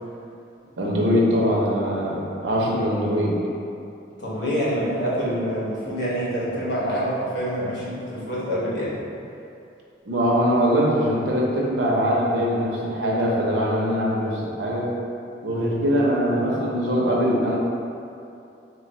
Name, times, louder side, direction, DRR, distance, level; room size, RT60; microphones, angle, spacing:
voice 1, 0.8-3.4 10.1-14.9 15.4-17.6, equal, 80° right, -3 dB, 0.7 m, -22 dB
voice 2, 4.2-9.0, equal, 75° left, -7 dB, 1.0 m, -26 dB
3.3 x 2.3 x 4.1 m, 2.6 s
head